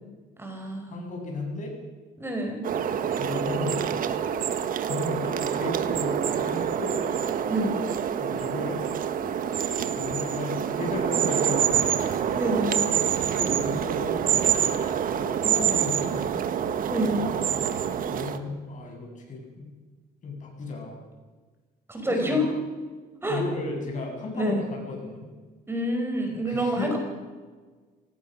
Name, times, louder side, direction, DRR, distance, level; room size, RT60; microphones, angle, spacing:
voice 1, 0.4-0.9 2.2-2.7 7.5-7.7 12.3-12.8 16.9-17.2 21.9-22.5 23.2-23.4 24.3-24.6 25.7-27.0, equal, 15° right, 3 dB, 5.1 m, -27 dB
voice 2, 0.9-1.7 3.2-4.0 4.8-7.0 8.2-8.8 9.9-11.9 13.2-14.1 14.6-14.8 15.1-16.3 17.5-17.6 18.1-19.7 20.2-21.0 22.0-22.4 23.2-25.2 26.4-26.9, left 2 dB, 50° left, 1 dB, 7.9 m, -34 dB
sound 1, 2.6-18.4, right 8 dB, 55° right, 1.5 m, -26 dB
25.0 x 18.0 x 6.4 m, 1.4 s
cardioid pair, 110°, 17 cm